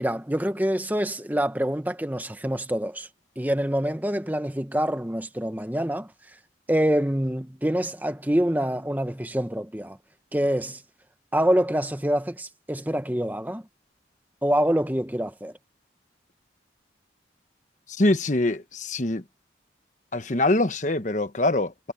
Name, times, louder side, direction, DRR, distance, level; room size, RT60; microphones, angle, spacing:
voice 1, 0.0-3.1 3.4-6.1 6.7-10.0 10.3-10.8 11.3-13.6 14.4-15.5, equal, 10° right, 1.1 m, -26 dB
voice 2, 18.0-19.2 20.1-21.9, left 2 dB, 40° left, 1.1 m, -24 dB
head